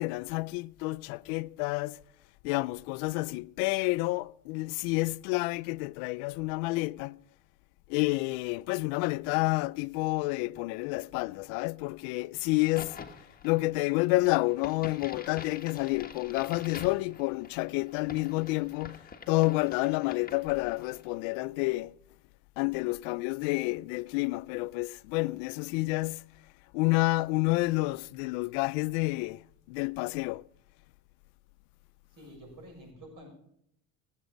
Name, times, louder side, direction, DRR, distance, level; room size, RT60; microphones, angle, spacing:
voice 1, 0.0-2.0 2.4-7.2 7.9-13.1 13.4-22.0 22.6-26.3 26.7-29.4 29.7-30.4, left 23 dB, 85° left, 0.5 m, -29 dB
Crack, 12.5-21.1, left 5 dB, 20° left, 1.5 m, -47 dB
voice 2, 32.1-33.3, equal, 55° right, 6.9 m, -49 dB
17.5 x 8.2 x 5.1 m
supercardioid pair, 100°, 40 cm